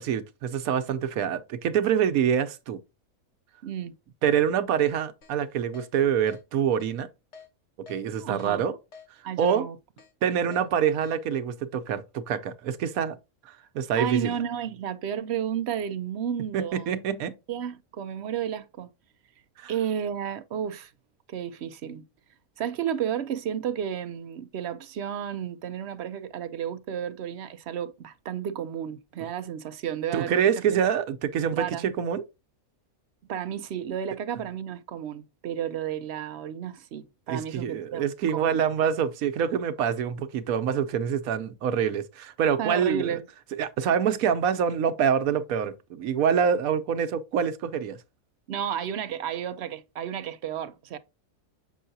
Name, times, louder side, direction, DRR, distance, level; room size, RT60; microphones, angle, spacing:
voice 1, 0.0-2.8 4.2-7.1 7.9-8.8 9.4-9.7 10.2-13.2 13.7-14.3 16.5-17.3 19.6-19.7 30.1-32.2 37.3-43.2 43.6-48.0, right 8 dB, 80° right, 1.1 m, -26 dB
voice 2, 3.6-4.0 8.2-8.7 9.2-9.8 13.9-16.9 17.5-18.9 19.7-20.9 21.3-22.0 22.6-30.8 31.5-31.9 33.3-38.0 38.3-38.7 42.6-43.2 48.5-51.0, right 9 dB, 65° right, 0.7 m, -32 dB
Keyboard (musical), 5.2-5.3 5.7-5.9 6.3-6.4 6.8-6.9 7.3-7.5 7.9-8.0 8.4-8.5 8.9-9.1 9.5-9.6 10.0-10.1 10.5-10.7 11.0-11.2, left 5 dB, 55° left, 1.3 m, -47 dB
7.1 x 5.5 x 2.6 m
omnidirectional pair, 1.5 m